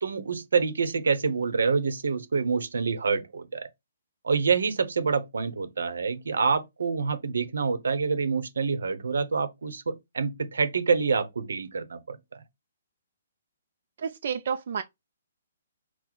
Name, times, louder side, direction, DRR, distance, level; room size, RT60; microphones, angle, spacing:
voice 1, 0.0-3.7 4.2-12.4, right 5 dB, 85° right, 0.8 m, -27 dB
voice 2, 14.0-14.8, right 7 dB, 55° right, 0.4 m, -30 dB
4.5 x 2.1 x 3.9 m
hypercardioid pair, 160°, 0 cm